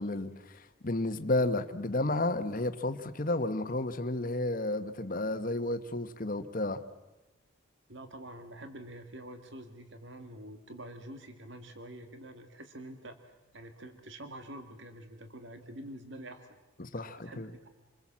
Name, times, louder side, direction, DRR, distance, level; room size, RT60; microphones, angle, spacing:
voice 1, 0.0-6.8 16.8-17.5, left 2 dB, 40° left, 1.2 m, -32 dB
voice 2, 7.9-17.4, right 1 dB, 60° right, 1.9 m, -47 dB
27.5 x 21.5 x 7.4 m
head